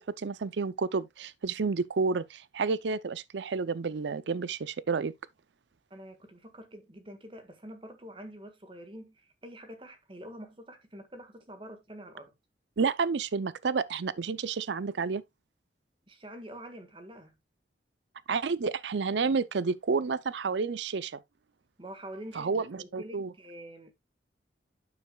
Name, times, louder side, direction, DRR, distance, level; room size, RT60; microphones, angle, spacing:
voice 1, 0.0-5.1 12.8-15.2 18.3-21.2 22.4-23.3, right 4 dB, 75° right, 0.5 m, -30 dB
voice 2, 5.9-12.3 16.1-17.4 21.8-23.9, right 1 dB, 30° right, 1.6 m, -46 dB
9.4 x 6.9 x 2.3 m
head